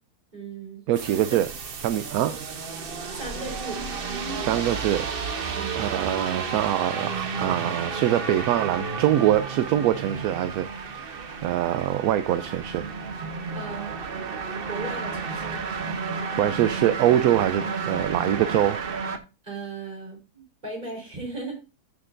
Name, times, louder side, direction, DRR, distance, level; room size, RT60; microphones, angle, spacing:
voice 1, 0.3-0.9 1.3-1.4 3.1-3.8 5.5-5.8 13.5-13.9 14.7-15.6 19.4-21.6, right 3 dB, 25° right, 4.1 m, -37 dB
voice 2, 0.9-1.5 1.8-2.3 4.3-5.1 5.8-12.9 16.3-18.8, right 12 dB, 70° right, 1.0 m, -24 dB
sound 1, 1.0-19.2, right 5 dB, 45° right, 0.9 m, -32 dB
13.0 x 6.7 x 2.6 m
omnidirectional pair, 1.7 m